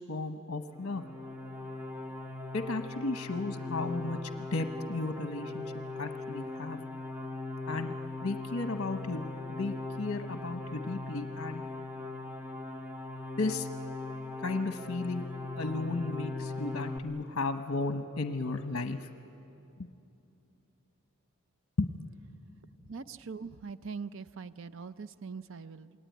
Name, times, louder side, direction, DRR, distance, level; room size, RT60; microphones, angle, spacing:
voice 1, 0.1-1.0 2.5-5.7 6.0-6.8 7.7-7.9 8.2-11.6 13.4-13.7 14.4-15.2 15.6-19.1 19.8-19.9 21.8-21.9, left 3 dB, 60° left, 6 dB, 1.0 m, -34 dB
sound 1, 0.7-17.0, left 2 dB, 10° right, 1.5 m, -40 dB
voice 2, 22.9-25.9, right 5 dB, 60° right, 13 dB, 0.5 m, -42 dB
28.0 x 21.0 x 9.3 m, 2.8 s
head